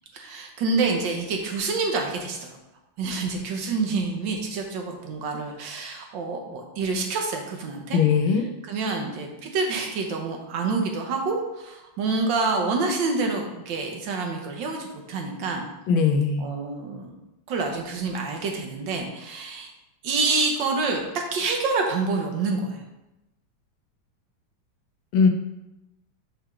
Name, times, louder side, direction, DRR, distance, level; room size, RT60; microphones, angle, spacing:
voice 1, 0.1-2.6 3.0-8.0 8.7-15.7 16.4-17.1 17.5-19.7 20.0-22.8, right 3 dB, 70° right, 2 dB, 1.6 m, -27 dB
voice 2, 7.9-8.5 15.9-16.5 25.1-25.3, left 5 dB, 80° left, 4 dB, 1.5 m, -20 dB
6.1 x 3.4 x 5.6 m, 0.95 s
omnidirectional pair, 2.2 m